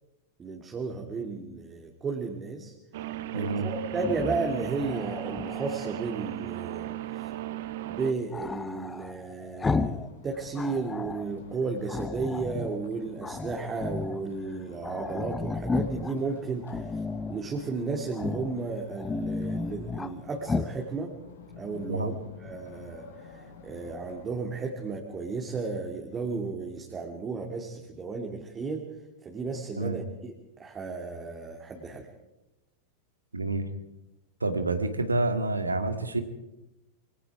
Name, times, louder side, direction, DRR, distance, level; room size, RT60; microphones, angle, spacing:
voice 1, 0.4-2.7 3.3-7.3 7.8-17.0 17.3-21.2 21.6-28.9 29.2-30.3 30.6-32.1, right 4 dB, 20° right, 1 dB, 2.6 m, -34 dB
sound 1, 2.9-8.1, right 14 dB, 55° right, 1.4 m, -36 dB
voice 2, 3.3-3.7 21.9-22.1 29.8-30.0 33.3-33.7 34.4-36.2, right 2 dB, 80° right, 9 dB, 2.0 m, -28 dB
Growling, 3.9-6.0 8.3-10.1 10.4-11.3 11.9-12.8 13.2-14.2 14.5-14.6 14.8-16.1 16.6-17.4 18.1-18.6 18.9-20.1 20.4-20.8, left 4 dB, 15° left, 0.9 m, -33 dB
sound 2, 9.8-24.2, left 5 dB, 65° left, 4.2 m, -50 dB
26.5 x 24.0 x 4.9 m, 0.93 s
figure-of-eight pair, 90°, 0 cm